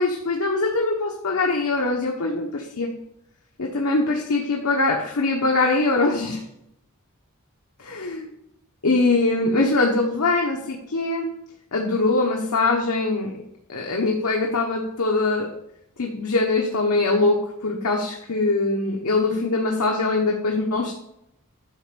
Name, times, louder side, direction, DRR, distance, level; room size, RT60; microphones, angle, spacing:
voice 1, 0.0-2.9 3.6-6.4 7.8-8.3 8.8-11.3 11.7-13.3 13.7-15.5 16.0-17.4 17.6-20.9, left 3 dB, 80° left, 0 dB, 1.1 m, -22 dB
11.0 x 4.4 x 6.9 m, 0.82 s
head